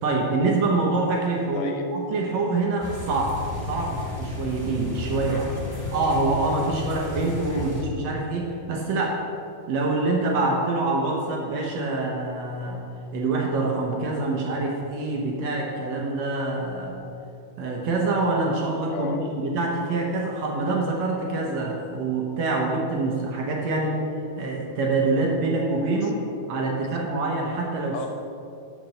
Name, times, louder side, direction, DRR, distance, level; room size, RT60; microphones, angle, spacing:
voice 1, 0.0-3.4 3.7-5.5 5.9-9.2 9.7-12.8 13.1-17.0 17.6-24.0 24.4-26.1 26.5-28.0, right 3 dB, 70° right, -1 dB, 1.8 m, -25 dB
voice 2, 1.5-1.8 3.7-3.9 5.3-5.8 7.5-7.6 18.9-19.2 26.0-26.1 26.8-27.0 27.9-28.1, left 7 dB, 85° left, 5 dB, 2.4 m, -37 dB
sound 1, 2.8-7.8, left 3 dB, 20° left, 0.5 m, -33 dB
6.5 x 6.0 x 6.7 m, 2.5 s
omnidirectional pair, 3.7 m